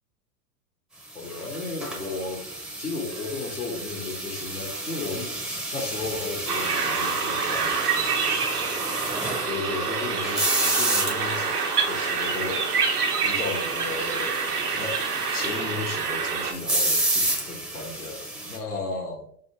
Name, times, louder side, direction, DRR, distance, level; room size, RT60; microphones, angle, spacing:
voice 1, 1.1-2.5 2.8-7.9 9.4-11.6 11.8-12.7 13.2-14.4 14.8-15.0 15.3-19.3, left 3 dB, 85° left, 1 dB, 1.1 m, -34 dB
sound 1, 1.1-18.6, right 1 dB, ahead, 0.4 m, -31 dB
sound 2, 6.5-16.5, right 5 dB, 90° right, 0.8 m, -27 dB
5.2 x 2.2 x 2.9 m, 0.66 s
figure-of-eight pair, 95°, 44 cm